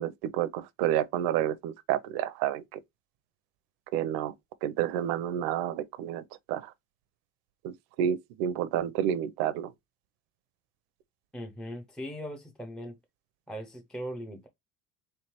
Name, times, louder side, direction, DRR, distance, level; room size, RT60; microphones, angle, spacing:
voice 1, 0.0-2.6 3.9-4.3 4.6-6.7 7.6-9.7, right 10 dB, 80° right, 0.6 m, -30 dB
voice 2, 11.3-13.0 13.5-14.5, equal, ahead, 0.5 m, -39 dB
3.6 x 3.2 x 2.9 m
cardioid pair, 120°, 37 cm